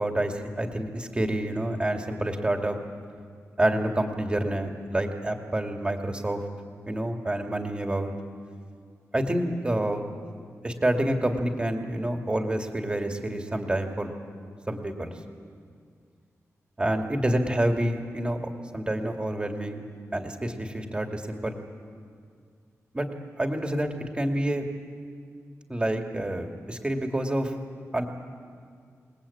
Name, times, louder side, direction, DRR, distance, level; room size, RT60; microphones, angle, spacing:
voice 1, 0.0-2.8 3.6-6.4 6.9-8.1 9.1-10.1 10.6-14.1 14.7-15.1 16.8-18.4 18.7-19.8 20.1-21.6 22.9-23.1 23.4-23.9 24.1-24.7 25.7-27.5 27.9-28.1, right 1 dB, 20° right, 3 dB, 2.3 m, -28 dB
28.0 x 20.5 x 8.7 m, 2.2 s
wide cardioid pair, 135°, 6 cm